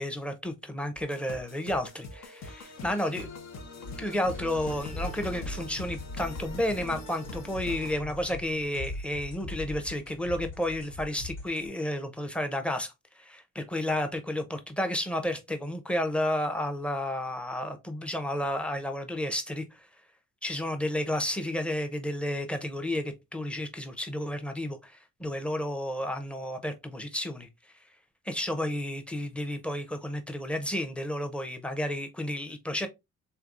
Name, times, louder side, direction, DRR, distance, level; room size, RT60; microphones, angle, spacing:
voice 1, 0.0-3.3 4.0-19.9 20.4-27.5 28.2-32.9, left 1 dB, 5° left, 0.7 m, -32 dB
sound 1, 1.0-7.9, left 3 dB, 60° left, 0.9 m, -43 dB
sound 2, 3.8-11.7, left 1 dB, 85° left, 2.5 m, -40 dB
3.3 x 3.3 x 2.5 m
cardioid pair, 90°, 30 cm